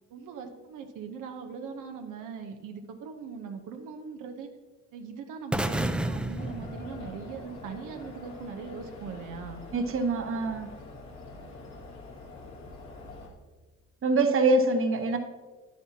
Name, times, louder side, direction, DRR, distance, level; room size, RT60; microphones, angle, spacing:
voice 1, 0.1-4.5 4.9-9.6, right 5 dB, 90° right, 4 dB, 0.9 m, -40 dB
sound 1, 5.5-7.6, right 1 dB, 5° right, 0.4 m, -31 dB
sound 2, 6.3-13.3, left 3 dB, 65° left, 2.1 m, -45 dB
voice 2, 9.7-10.7 14.0-15.2, right 2 dB, 45° right, 6 dB, 1.0 m, -24 dB
10.0 x 9.6 x 2.8 m, 1.3 s
cardioid pair, 90°, 30 cm